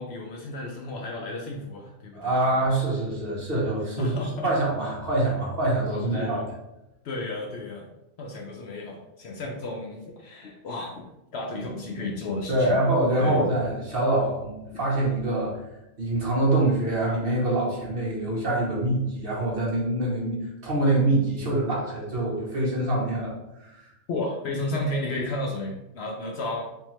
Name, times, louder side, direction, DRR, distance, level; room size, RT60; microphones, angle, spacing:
voice 1, 0.0-2.3 4.0-4.5 6.1-6.4 7.0-7.9 8.2-11.0 11.3-12.8 13.2-13.4 24.1-26.6, left 2 dB, 65° left, 0 dB, 0.7 m, -33 dB
voice 2, 2.1-4.1 4.4-6.4 12.5-15.6 16.0-23.3 23.6-23.9, right 2 dB, 50° right, -4 dB, 1.1 m, -25 dB
3.6 x 2.9 x 3.0 m, 0.92 s
omnidirectional pair, 1.3 m